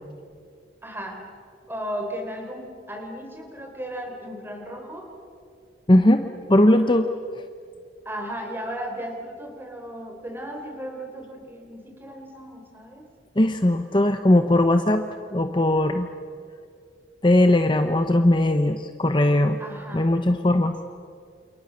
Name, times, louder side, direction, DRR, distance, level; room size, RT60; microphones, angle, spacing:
voice 1, 0.8-1.2 1.7-5.1 8.0-13.0 19.6-20.4, equal, 10° right, 3 dB, 4.2 m, -35 dB
voice 2, 5.9-6.2 6.5-7.1 13.4-15.0 15.3-16.1 17.2-19.6 19.9-20.8, left 1 dB, 25° left, 7 dB, 0.9 m, -19 dB
29.0 x 28.5 x 6.5 m, 2.4 s
head